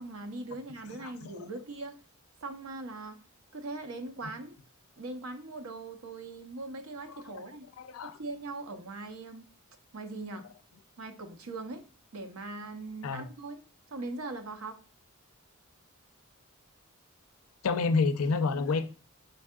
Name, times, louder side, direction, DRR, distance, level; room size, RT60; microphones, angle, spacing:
voice 1, 0.0-2.0 2.4-3.2 3.5-4.6 5.0-7.7 8.0-9.5 9.9-10.5 11.0-11.9 12.1-13.6 13.9-14.8, right 2 dB, 70° right, 0.7 m, -40 dB
voice 2, 7.8-8.2 13.0-13.2 17.6-18.9, left 4 dB, 75° left, 0.5 m, -28 dB
5.3 x 3.6 x 2.2 m
head